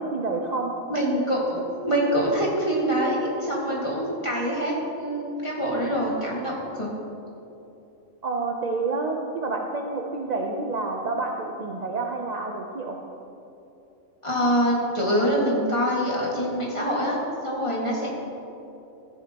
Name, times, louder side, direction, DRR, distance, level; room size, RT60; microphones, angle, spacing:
voice 1, 0.0-0.7 8.2-13.0, right 3 dB, 40° right, 1 dB, 0.6 m, -28 dB
voice 2, 0.9-6.9 14.2-18.1, equal, 20° left, -4 dB, 1.9 m, -25 dB
14.0 x 10.0 x 2.9 m, 2.9 s
omnidirectional pair, 1.5 m